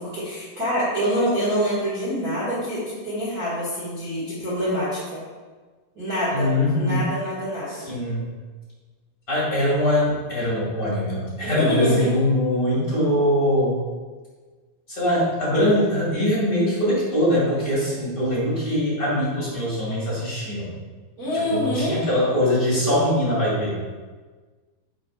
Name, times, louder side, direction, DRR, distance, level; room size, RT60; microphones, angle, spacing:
voice 1, 0.0-5.2 5.9-7.8 11.4-12.2 21.2-22.0, equal, 35° right, -10 dB, 1.8 m, -26 dB
voice 2, 6.3-7.0 7.7-8.3 9.3-13.8 14.9-20.7 21.3-23.8, left 1 dB, 30° left, -8 dB, 1.8 m, -22 dB
9.0 x 7.1 x 2.4 m, 1.4 s
omnidirectional pair, 4.7 m